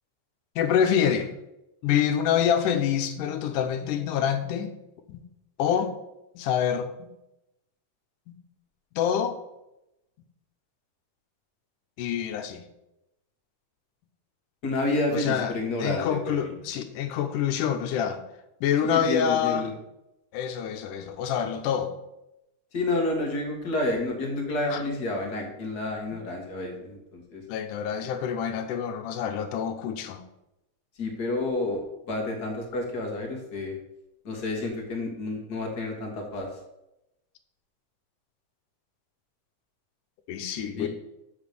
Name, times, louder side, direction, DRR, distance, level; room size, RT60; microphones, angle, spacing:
voice 1, 0.6-1.3 1.8-4.7 5.1-5.2 5.6-5.9 6.4-6.9 8.3-8.4 9.0-9.4 12.0-12.6 15.1-15.5 15.8-18.2 18.6-19.7 20.3-21.9 24.7-24.8 26.1-26.2 27.5-30.2 40.3-40.9, left 8 dB, 80° left, 7 dB, 2.3 m, -26 dB
voice 2, 14.6-16.5 18.8-19.7 22.7-27.4 31.0-31.8 32.1-33.8 34.2-36.5 40.5-40.9, left 2 dB, 40° left, 1 dB, 1.7 m, -29 dB
7.1 x 6.0 x 6.7 m, 0.89 s
omnidirectional pair, 3.6 m